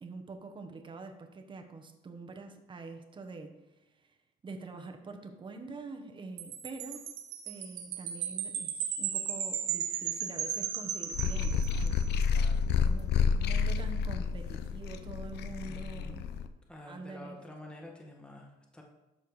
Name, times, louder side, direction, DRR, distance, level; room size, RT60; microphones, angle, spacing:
voice 1, 0.0-3.6 4.0-4.1 4.4-7.1 7.4-12.0 12.3-16.2 16.9-17.4, right 3 dB, 30° right, 5 dB, 1.2 m, -45 dB
Wind chime, 6.4-12.1, right 9 dB, 85° right, 1.2 m, -36 dB
sound 1, 11.1-16.5, left 6 dB, 75° left, 0.7 m, -29 dB
voice 2, 12.3-12.9 15.6-16.2 16.7-18.8, left 1 dB, 5° left, 0 dB, 1.5 m, -49 dB
12.5 x 4.5 x 4.9 m, 0.97 s
cardioid pair, 110°, 17 cm